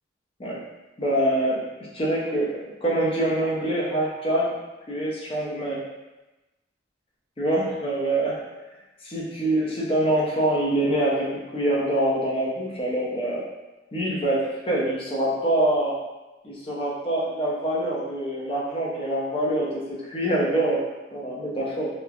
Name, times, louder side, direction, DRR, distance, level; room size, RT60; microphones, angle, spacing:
voice 1, 1.0-1.6 1.9-4.5 4.9-5.8 7.4-8.4 9.0-11.3 11.5-13.4 13.9-15.9 16.4-19.8 20.1-20.8 21.1-21.9, right 1 dB, 30° left, -5 dB, 0.6 m, -25 dB
3.0 x 2.1 x 2.4 m, 1.1 s
head